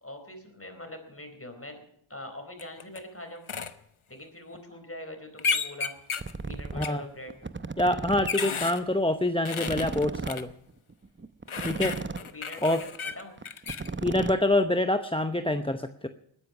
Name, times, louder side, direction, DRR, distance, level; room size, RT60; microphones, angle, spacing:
voice 1, 0.0-1.8 2.1-3.5 4.1-5.9 6.4-7.3 12.3-13.3, left 1 dB, 25° left, 6 dB, 4.2 m, -42 dB
sound 1, 2.6-3.0 3.5-3.7 5.4-6.3 6.8-6.9 7.8-8.8 9.4-10.4 11.5-13.9, left 5 dB, 75° left, 1.1 m, -32 dB
sound 2, 6.2-6.8 7.3-8.3 8.6-8.7 8.9-9.0 9.3-9.4 9.6-12.3 12.6-12.8 13.1-13.2 13.4-14.8, right 4 dB, 25° right, 0.8 m, -35 dB
voice 2, 7.8-10.5 11.6-12.0 12.6-12.8 14.0-16.1, left 1 dB, 10° left, 8 dB, 0.8 m, -26 dB
20.0 x 10.0 x 6.1 m, 0.71 s
wide cardioid pair, 55°, 49 cm